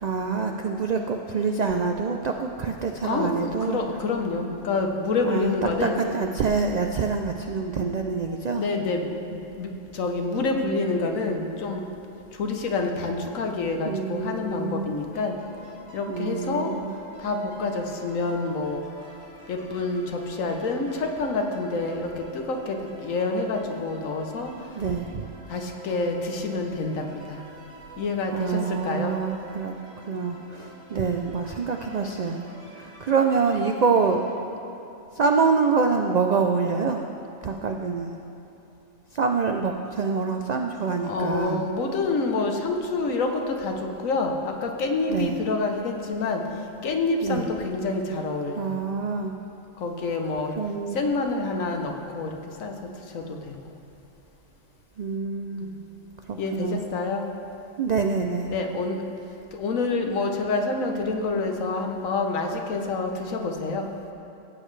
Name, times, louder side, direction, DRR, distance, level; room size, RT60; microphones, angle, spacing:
voice 1, 0.0-3.8 5.2-8.6 13.8-14.9 16.1-16.9 24.7-25.3 28.3-29.8 30.1-32.4 32.7-34.2 35.1-37.1 37.4-38.1 39.1-41.6 45.1-45.4 47.2-47.5 48.6-49.3 50.6-51.0 55.0-55.7 56.3-56.8 57.8-58.5, right 5 dB, 80° right, 3 dB, 0.3 m, -26 dB
voice 2, 3.0-5.9 8.5-11.8 12.3-15.4 15.9-16.7 17.2-18.8 19.5-24.5 25.5-27.4 28.0-29.2 41.0-46.4 46.8-48.8 49.8-50.5 50.9-52.7 53.1-53.5 55.6-55.7 56.4-57.2 58.5-59.0 59.5-63.9, left 3 dB, 90° left, 3 dB, 1.3 m, -27 dB
sound 1, 15.0-34.3, right 1 dB, 55° right, 3.3 m, -48 dB
16.0 x 8.6 x 3.2 m, 2.8 s
omnidirectional pair, 1.3 m